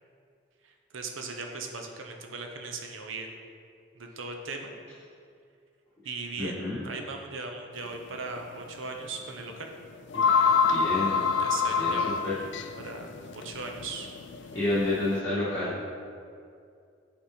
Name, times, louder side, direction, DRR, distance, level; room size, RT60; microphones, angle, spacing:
voice 1, 0.6-3.4 3.9-4.7 6.0-9.7 11.4-12.5 12.8-14.1, right 3 dB, 80° right, 3 dB, 0.8 m, -38 dB
voice 2, 6.4-6.9 10.1-11.2 11.8-11.9 12.2-12.3 14.5-15.8, left 2 dB, 15° left, -13 dB, 1.7 m, -30 dB
sound 1, 7.8-8.0 8.4-8.5 9.6-9.7 9.9-15.2, left 6 dB, 65° left, 0.4 m, -27 dB
8.4 x 4.3 x 4.3 m, 2.3 s
head